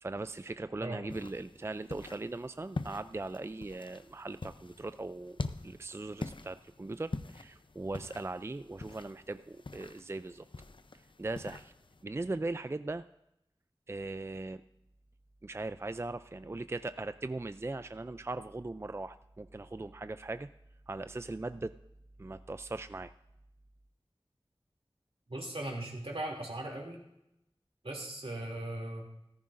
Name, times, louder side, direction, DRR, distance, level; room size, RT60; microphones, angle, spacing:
voice 1, 0.0-5.4 5.6-10.5 11.2-11.7 12.0-13.0 13.9-14.6 15.4-20.5 20.9-21.8 22.2-23.1, right 2 dB, 25° right, 12 dB, 0.3 m, -39 dB
sound 1, 1.1-12.0, left 3 dB, 60° left, 0.5 m, -44 dB
voice 2, 25.3-27.0 27.8-29.1, right 1 dB, 80° right, -1 dB, 2.7 m, -38 dB
14.5 x 14.0 x 2.5 m, 0.84 s
wide cardioid pair, 45°, 10 cm